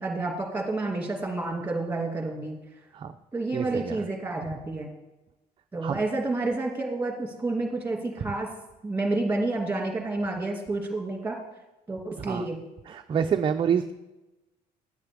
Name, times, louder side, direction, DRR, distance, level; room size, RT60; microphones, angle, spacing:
voice 1, 0.0-2.6 3.3-4.9 5.7-8.5 8.8-11.4 11.9-12.6, right 2 dB, 10° right, 1 dB, 2.1 m, -29 dB
voice 2, 3.5-4.0 5.8-6.0 8.2-8.3 12.2-12.5 12.9-13.9, right 7 dB, 30° right, 7 dB, 0.4 m, -27 dB
9.6 x 8.8 x 3.5 m, 1.0 s
cardioid pair, 110°, 17 cm